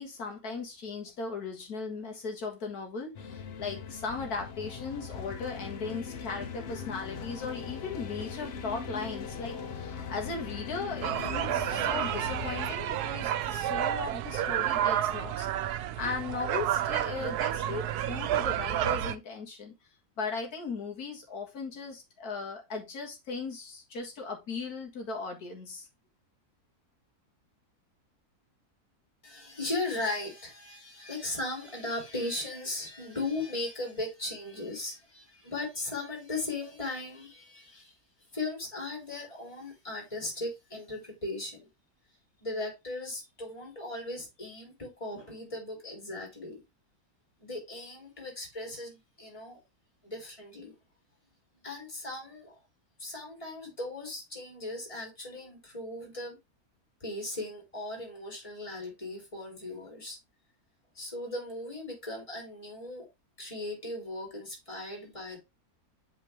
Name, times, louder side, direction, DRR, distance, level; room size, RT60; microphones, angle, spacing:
voice 1, 0.0-19.7 20.2-25.9, left 4 dB, 75° left, 2.2 m, -37 dB
sound 1, 3.1-12.7, left 6 dB, 50° left, 0.9 m, -40 dB
sound 2, 11.0-19.2, right 11 dB, 90° right, 1.1 m, -30 dB
voice 2, 29.2-37.9 38.3-41.7 42.4-46.6 47.4-49.6 50.0-50.7 51.6-52.6 53.0-56.4 57.0-60.2 60.9-63.1 63.4-65.4, left 2 dB, 20° left, 3.2 m, -37 dB
8.2 x 4.5 x 3.3 m
omnidirectional pair, 1.6 m